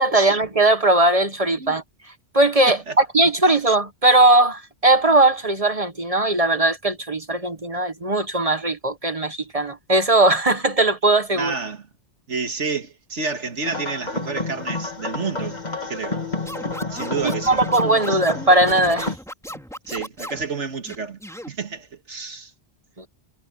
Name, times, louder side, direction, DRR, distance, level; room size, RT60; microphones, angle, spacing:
voice 1, 0.0-1.8 2.3-11.5 17.5-19.1 23.0-23.1, right 2 dB, 35° right, 1.1 m, -19 dB
voice 2, 11.3-11.9 12.3-15.6 15.9-16.2 16.9-17.6 18.0-18.2 19.9-21.2 21.5-22.5, right 4 dB, 90° right, 2.4 m, -30 dB
sound 1, 13.6-19.2, left 2 dB, 40° left, 2.9 m, -29 dB
Scratching (performance technique), 16.5-20.5 20.8-21.5, equal, 5° left, 2.6 m, -37 dB
omnidirectional pair, 1.2 m